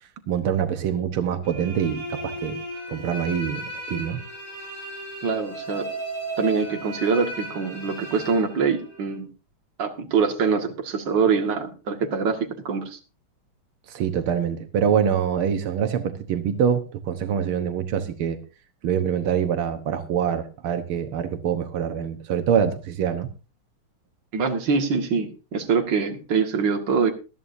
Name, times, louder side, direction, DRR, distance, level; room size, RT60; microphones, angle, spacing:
voice 1, 0.3-2.6 2.9-4.2 13.9-18.4 18.8-23.3, right 8 dB, 90° right, 8 dB, 2.0 m, -25 dB
sound 1, 1.4-9.2, right 1 dB, 70° left, 7.1 m, -35 dB
voice 2, 5.2-5.9 6.4-9.3 9.8-13.0 24.3-27.1, right 5 dB, 60° right, 5 dB, 2.4 m, -24 dB
20.0 x 13.0 x 2.7 m, 0.32 s
omnidirectional pair, 2.3 m